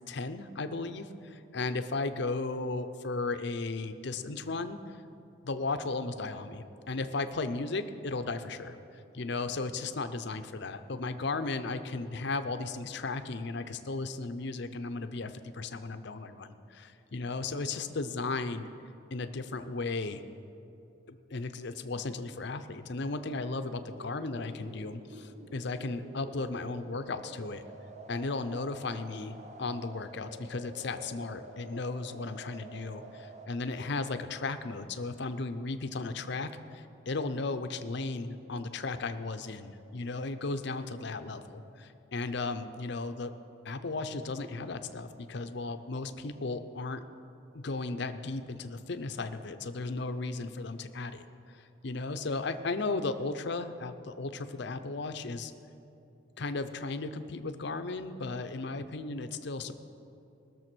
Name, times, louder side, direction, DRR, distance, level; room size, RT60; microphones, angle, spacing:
voice 1, 0.1-4.8 5.4-8.8 9.1-18.7 19.1-20.2 21.1-27.6 28.1-43.3 43.6-47.0 47.5-55.5 56.4-59.7, left 3 dB, 55° left, 10 dB, 0.6 m, -35 dB
sound 1, 23.9-33.5, right 2 dB, 35° right, 0.7 m, -49 dB
19.5 x 6.9 x 6.1 m, 2.8 s
head